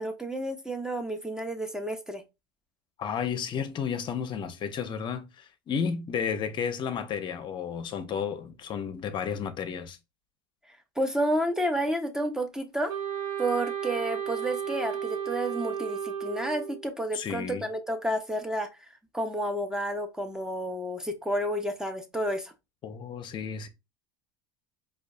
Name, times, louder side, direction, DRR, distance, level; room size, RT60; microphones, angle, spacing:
voice 1, 0.0-2.2 11.0-12.9 13.4-18.7 19.1-22.5, right 1 dB, 5° right, 0.7 m, -30 dB
voice 2, 3.0-10.0 17.1-17.6 22.8-23.7, left 7 dB, 40° left, 0.7 m, -32 dB
Wind instrument woodwind instrument, 12.9-16.9, right 8 dB, 65° right, 1.3 m, -33 dB
4.7 x 2.4 x 2.6 m
hypercardioid pair, 80°, 12 cm